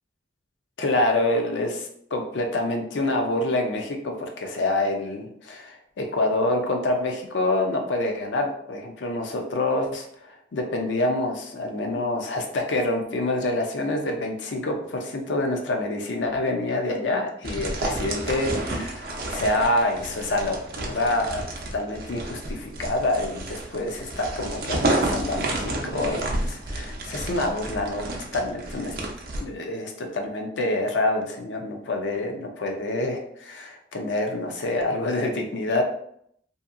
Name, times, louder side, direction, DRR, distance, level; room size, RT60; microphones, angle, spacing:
voice 1, 0.8-21.4 21.7-28.0 28.3-28.9 29.4-35.8, left 2 dB, 85° left, 3 dB, 0.5 m, -27 dB
sound 1, 17.4-29.4, right 2 dB, 55° right, 0.5 m, -30 dB
2.7 x 2.6 x 2.4 m, 0.69 s
head